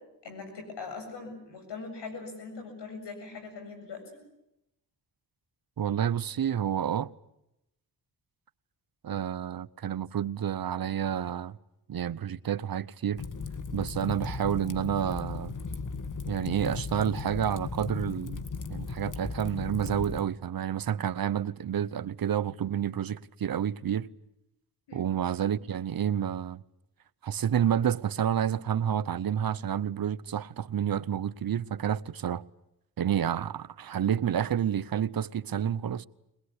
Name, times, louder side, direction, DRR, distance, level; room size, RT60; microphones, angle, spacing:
voice 1, 0.2-4.2 24.9-25.1, left 4 dB, 90° left, 7.7 m, -41 dB
voice 2, 5.8-7.1 9.0-11.6 11.9-13.2 13.7-15.5 16.3-18.4 18.7-24.1 24.9-26.6 27.2-32.4 33.0-36.1, right 9 dB, 60° right, 0.8 m, -29 dB
Fire, 13.2-20.2, left 4 dB, 50° left, 1.8 m, -36 dB
22.5 x 20.5 x 9.8 m
cardioid pair, 55°, 41 cm